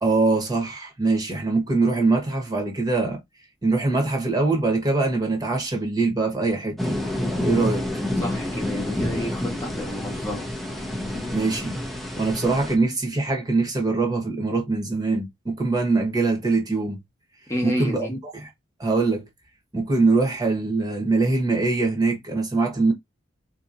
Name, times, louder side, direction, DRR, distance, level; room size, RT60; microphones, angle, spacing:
voice 1, 0.0-3.2 3.6-7.0 7.4-7.9 11.3-11.8 12.2-17.0 17.6-18.5 18.8-19.2 19.7-22.9, right 3 dB, 20° right, 1.2 m, -23 dB
sound 1, 6.8-12.7, left 1 dB, ahead, 0.7 m, -28 dB
voice 2, 8.2-10.5 17.5-18.1, equal, 15° left, 1.1 m, -30 dB
4.0 x 2.8 x 2.5 m
head